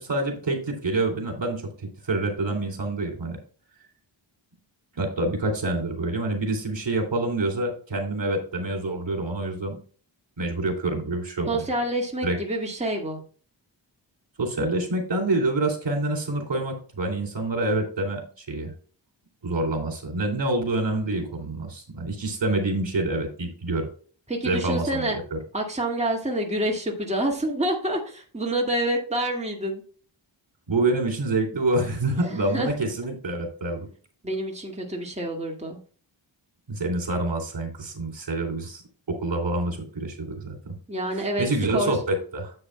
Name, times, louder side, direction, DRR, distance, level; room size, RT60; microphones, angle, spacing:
voice 1, 0.0-3.4 5.0-9.8 10.4-11.7 12.2-12.4 14.4-18.7 19.4-23.9 24.4-25.4 30.7-33.9 36.7-38.8 39.1-40.7 41.4-42.5, right 2 dB, 65° right, 2 dB, 2.7 m, -27 dB
voice 2, 11.5-13.2 24.3-25.2 25.5-29.8 32.2-32.7 34.2-35.8 40.9-41.5 41.7-42.0, right 1 dB, 15° right, 0 dB, 1.9 m, -27 dB
9.8 x 8.0 x 2.2 m, 0.41 s
wide cardioid pair, 80°, 47 cm